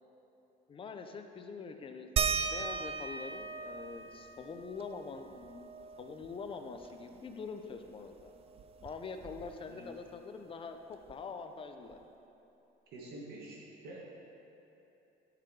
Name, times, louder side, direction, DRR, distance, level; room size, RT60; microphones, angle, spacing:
voice 1, 0.7-5.7 6.0-8.3 8.8-12.0, left 4 dB, 30° left, 6 dB, 0.6 m, -44 dB
sound 1, 2.2-7.3 7.6-7.7 8.1-9.8 11.1-11.2 11.9-12.0, right 6 dB, 35° right, 0.4 m, -38 dB
voice 2, 12.9-14.0, right 2 dB, 70° right, -4 dB, 1.6 m, -47 dB
10.5 x 4.9 x 4.7 m, 2.9 s
cardioid pair, 110°, 17 cm